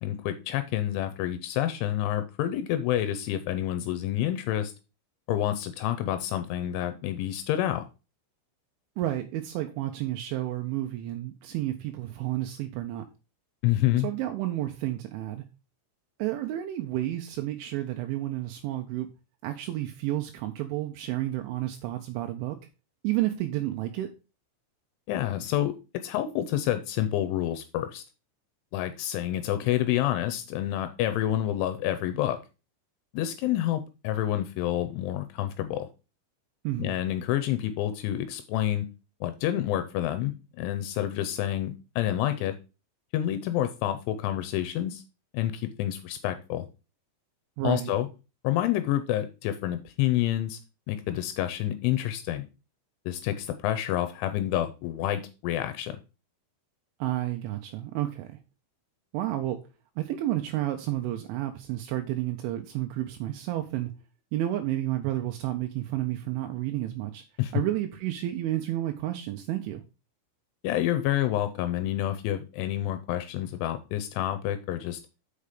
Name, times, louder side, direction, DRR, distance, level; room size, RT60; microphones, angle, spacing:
voice 1, 0.0-4.7 5.3-7.8 13.6-14.1 25.1-25.7 26.0-28.0 28.7-32.4 33.1-35.9 36.8-38.9 39.2-42.5 43.1-45.0 45.3-46.7 47.6-48.1 48.4-50.6 50.9-52.5 53.1-56.0 67.4-67.5 70.6-75.0, left 12 dB, 80° left, 9 dB, 3.0 m, -28 dB
voice 2, 9.0-13.1 14.0-15.5 16.2-19.1 19.4-22.6 23.0-24.1 36.6-37.0 47.6-47.9 57.0-58.3 59.1-59.6 60.0-63.9 64.3-67.2 67.5-69.8, right 14 dB, 80° right, 5 dB, 3.0 m, -31 dB
6.8 x 5.7 x 4.9 m, 0.30 s
omnidirectional pair, 5.7 m